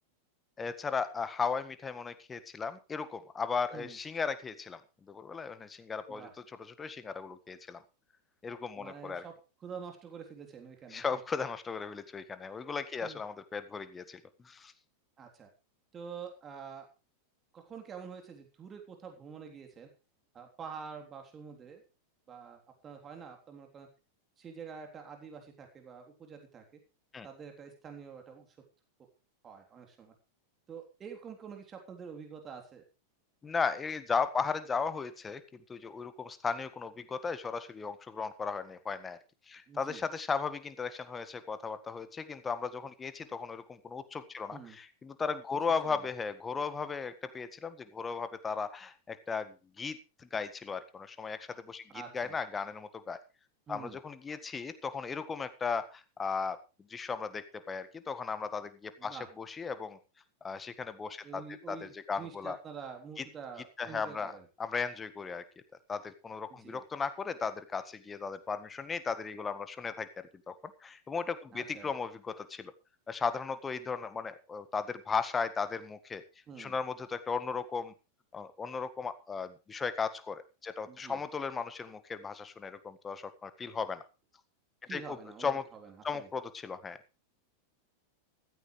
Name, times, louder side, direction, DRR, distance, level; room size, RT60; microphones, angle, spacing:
voice 1, 0.6-4.8 5.1-6.3 6.6-7.8 8.4-9.2 10.9-14.7 27.1-27.3 33.4-39.2 39.5-53.2 53.7-56.6 56.9-60.0 60.4-62.6 63.2-63.3 63.8-64.3 64.6-65.4 65.9-70.5 70.8-72.7 73.1-76.2 76.6-77.9 78.3-84.0 84.9-85.0 85.4-85.7 86.0-87.0, left 5 dB, 15° left, 13 dB, 1.6 m, -36 dB
voice 2, 8.8-9.3 9.6-11.2 13.0-13.2 15.2-15.5 15.9-16.9 17.5-19.9 20.3-21.8 22.3-23.9 24.4-26.6 27.2-28.5 29.4-30.1 30.7-32.8 39.7-40.0 44.5-44.8 45.8-46.0 51.9-52.4 53.7-54.0 59.0-59.3 61.2-64.5 66.5-66.8 71.5-71.9 76.5-76.7 80.9-81.2 84.8-86.3, right 6 dB, 25° right, 3 dB, 3.5 m, -47 dB
15.5 x 14.5 x 3.3 m, 0.31 s
figure-of-eight pair, 90°, 0 cm